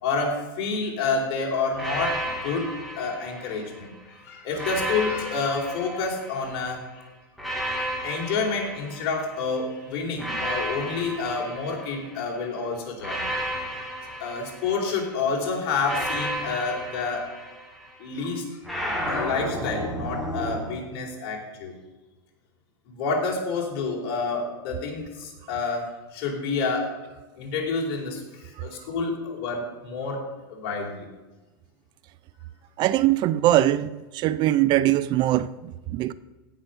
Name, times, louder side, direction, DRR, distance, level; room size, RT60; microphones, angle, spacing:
voice 1, 0.0-7.0 8.0-13.3 14.2-17.3 18.0-18.6 19.0-21.7 22.9-26.9 27.4-30.2 30.5-31.1, left 4 dB, 50° left, 4.1 m, -29 dB
sound 1, 1.7-3.9 4.5-6.7 7.4-9.5 10.2-12.3 13.0-15.2 15.8-18.0 18.6-20.7, equal, ahead, 2.6 m, -32 dB
voice 2, 32.8-36.1, right 14 dB, 35° right, 0.4 m, -22 dB
16.5 x 5.9 x 6.6 m
supercardioid pair, 140°, 13 cm